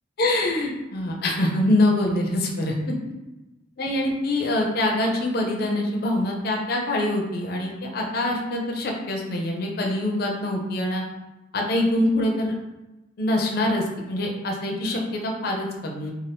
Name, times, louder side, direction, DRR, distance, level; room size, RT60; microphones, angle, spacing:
voice 1, 0.2-2.9 3.8-11.0 11.5-12.5 13.2-16.1, left 1 dB, 50° left, 1 dB, 0.5 m, -24 dB
2.6 x 2.3 x 3.3 m, 1.0 s
head